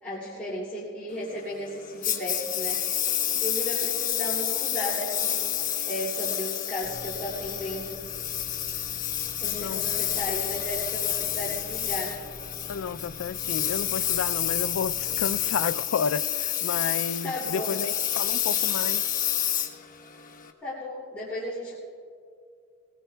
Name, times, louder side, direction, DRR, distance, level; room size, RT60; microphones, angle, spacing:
voice 1, 0.0-2.8 3.3-5.4 5.8-8.0 9.4-12.2 17.2-17.8 20.6-21.8, left 1 dB, 5° left, 2.6 m, -34 dB
Engine, 2.0-20.5, left 10 dB, 45° left, 1.1 m, -29 dB
sound 1, 6.8-15.4, equal, 85° right, 1.6 m, -47 dB
voice 2, 9.4-9.9 12.7-19.0, left 6 dB, 90° left, 0.4 m, -31 dB
21.5 x 18.5 x 2.3 m
head